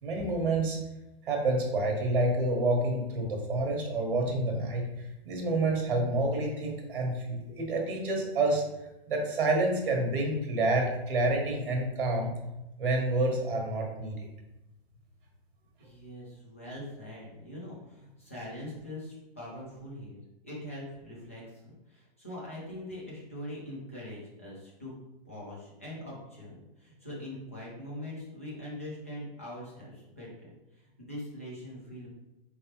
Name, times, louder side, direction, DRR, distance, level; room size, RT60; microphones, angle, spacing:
voice 1, 0.0-0.8 1.2-8.6 9.1-12.3 12.8-14.2, right 2 dB, 55° right, 1 dB, 1.2 m, -28 dB
voice 2, 15.8-21.4 21.9-24.9 25.2-32.1, left 1 dB, 15° left, -6 dB, 0.4 m, -42 dB
4.4 x 3.3 x 2.9 m, 0.94 s
hypercardioid pair, 180°, 31 cm